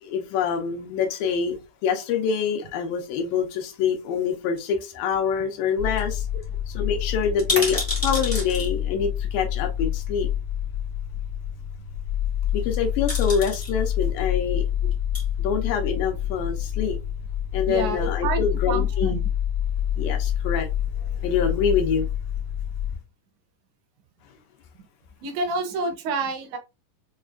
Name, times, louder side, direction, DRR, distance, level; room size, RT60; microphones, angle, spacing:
voice 1, 0.0-6.3 6.7-10.3 12.5-14.6 15.4-17.0 17.5-19.2 20.0-20.7 21.0-22.0, left 6 dB, 90° left, 2.4 m, -26 dB
sound 1, 4.6-5.4 5.7-5.8 6.0-6.1 6.4-6.5 7.2-8.7 9.9-10.0 12.5-12.7 13.1-13.7 14.9-15.2 15.9-16.6 16.9-17.0, left 1 dB, 35° left, 0.3 m, -30 dB
sound 2, 5.8-23.0, left 10 dB, 60° left, 0.7 m, -27 dB
voice 2, 17.7-19.2 25.2-26.6, right 3 dB, 75° right, 1.8 m, -28 dB
6.4 x 2.4 x 2.3 m
omnidirectional pair, 4.0 m